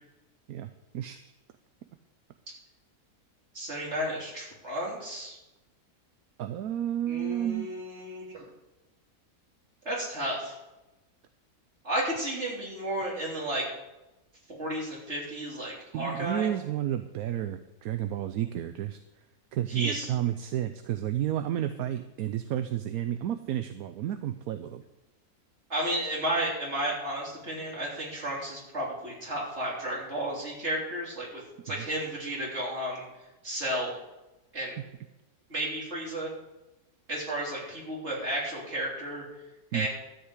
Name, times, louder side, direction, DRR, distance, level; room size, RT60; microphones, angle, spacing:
voice 1, 3.5-5.4 7.1-8.4 9.9-10.5 11.8-13.6 14.5-16.5 19.7-20.1 25.7-33.0 33.4-34.0 34.5-34.8 35.5-36.3 37.1-39.2 39.7-39.9, right 1 dB, 45° right, -4 dB, 3.7 m, -33 dB
voice 2, 6.4-7.7 15.9-19.0 19.5-24.8 31.8-31.9 34.8-34.9 39.7-39.9, right 11 dB, 75° right, 10 dB, 1.1 m, -31 dB
13.0 x 5.8 x 8.3 m, 1.0 s
omnidirectional pair, 1.6 m